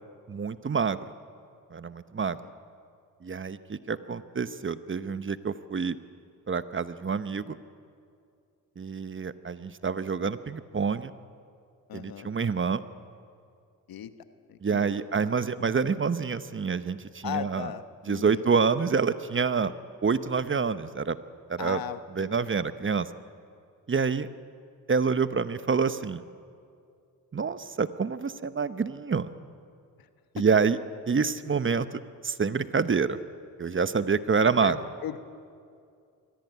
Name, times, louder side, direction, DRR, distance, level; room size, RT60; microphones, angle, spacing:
voice 1, 0.3-1.1 1.7-2.4 3.2-6.0 6.5-7.6 8.8-11.1 11.9-12.8 14.6-17.7 18.0-19.7 20.0-21.2 21.5-21.8 22.1-23.1 23.9-24.3 24.9-26.2 27.3-29.3 30.3-30.8 31.1-33.2 33.6-34.8, right 5 dB, 35° right, 13 dB, 1.0 m, -27 dB
voice 2, 11.9-12.3 13.9-14.1 14.5-14.9 17.2-17.8 18.1-18.4 21.6-22.3 34.6-34.7 35.0-35.2, left 10 dB, 75° left, 10 dB, 1.2 m, -36 dB
22.5 x 16.0 x 9.3 m, 2.4 s
supercardioid pair, 55°, 35 cm